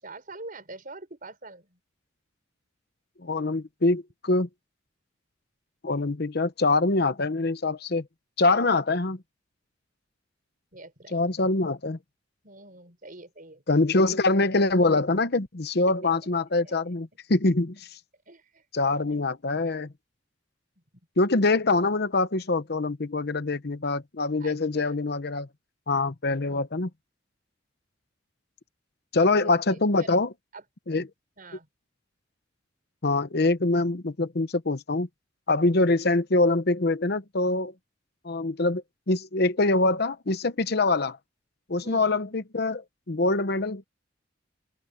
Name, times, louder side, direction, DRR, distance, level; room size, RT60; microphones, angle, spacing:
voice 1, 0.0-1.8 10.7-11.2 12.4-13.6 15.9-16.1 16.6-16.7 18.3-18.6 18.9-19.2 24.4-24.9 26.5-26.6 29.2-30.2 30.5-30.6 30.9-31.1 31.4-31.7 41.8-42.1, right 2 dB, 45° right, 5.5 m, -45 dB
voice 2, 3.2-4.5 5.8-8.0 8.4-9.2 11.1-12.0 13.7-17.9 18.7-19.9 21.2-25.5 25.9-26.9 29.1-30.3 30.9-31.1 33.0-35.1 35.5-37.7 38.2-41.2 41.7-43.8, left 2 dB, 55° left, 0.9 m, -24 dB
open air
head